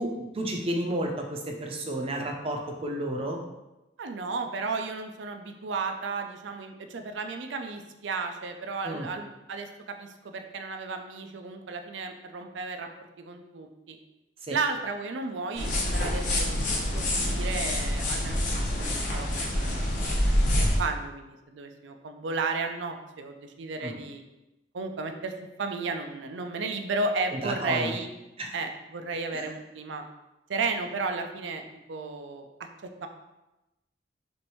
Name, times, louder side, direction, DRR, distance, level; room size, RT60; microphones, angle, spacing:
voice 1, 0.0-3.4 8.8-9.1 14.5-14.6 23.8-23.9 27.4-27.9 28.4-28.5 29.3-29.4, right 1 dB, 30° right, 1 dB, 0.6 m, -31 dB
voice 2, 4.0-12.9 13.2-14.0 14.5-24.2 24.7-25.3 25.6-28.1 28.5-30.0 30.5-32.5 33.0-33.1, right 3 dB, 80° right, 6 dB, 0.5 m, -34 dB
sound 1, 15.6-20.8, left 1 dB, 45° left, 0.9 m, -26 dB
6.2 x 2.6 x 3.1 m, 0.98 s
head